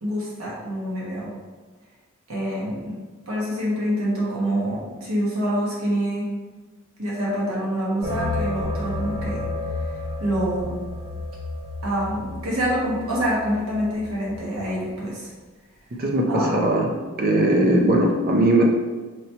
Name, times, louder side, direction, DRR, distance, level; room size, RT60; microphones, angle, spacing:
voice 1, 0.0-1.3 2.3-2.9 3.3-6.3 7.0-9.4 10.2-10.7 11.8-15.3 16.3-16.7, equal, 80° right, -5 dB, 1.2 m, -26 dB
sound 1, 8.0-14.6, left 2 dB, 25° right, 1.1 m, -31 dB
voice 2, 16.0-16.9 17.2-18.6, right 1 dB, 45° right, 0 dB, 0.5 m, -19 dB
3.0 x 2.8 x 4.4 m, 1.3 s
head